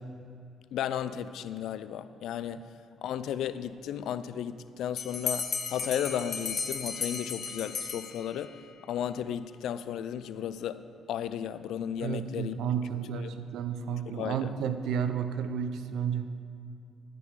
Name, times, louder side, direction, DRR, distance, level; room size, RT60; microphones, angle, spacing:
voice 1, 0.7-2.7 3.0-8.6 8.9-12.6 13.1-13.3 14.1-14.6, left 9 dB, 80° left, 13 dB, 0.3 m, -34 dB
Bell, 5.0-8.6, left 5 dB, 50° left, 0.9 m, -35 dB
voice 2, 12.0-16.3, right 7 dB, 80° right, 10 dB, 0.5 m, -32 dB
13.0 x 5.3 x 4.8 m, 2.5 s
cardioid pair, 90°, 0 cm